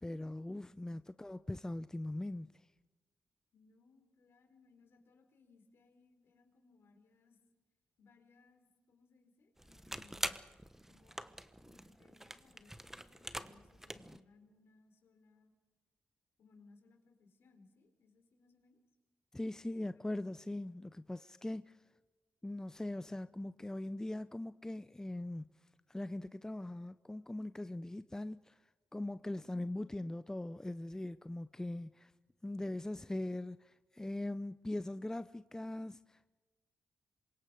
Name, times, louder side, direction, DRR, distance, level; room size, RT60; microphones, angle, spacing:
voice 1, 0.0-2.7 19.3-21.8 22.4-25.5 25.9-28.6 28.9-32.1 32.4-36.3, left 1 dB, 15° left, 0.6 m, -41 dB
voice 2, 0.7-1.2 3.5-7.4 8.0-10.3 10.9-11.2 11.6-15.5 16.4-18.8 20.0-20.1, left 4 dB, 70° left, 4.4 m, -66 dB
sound 1, 9.6-14.2, right 1 dB, 10° right, 1.3 m, -45 dB
26.5 x 24.0 x 5.1 m
supercardioid pair, 45°, 4 cm